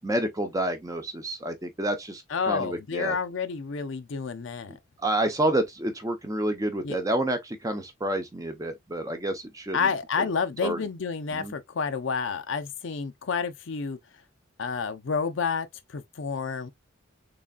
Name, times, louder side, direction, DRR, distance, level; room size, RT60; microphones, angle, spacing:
voice 1, 0.0-3.2 5.0-9.9 10.2-10.3 10.6-10.8 11.3-11.5, right 1 dB, 15° right, 0.6 m, -29 dB
voice 2, 2.3-4.7 6.8-7.0 9.7-14.0 14.6-15.7 15.9-16.7, left 5 dB, 60° left, 0.5 m, -29 dB
3.8 x 3.3 x 2.2 m
head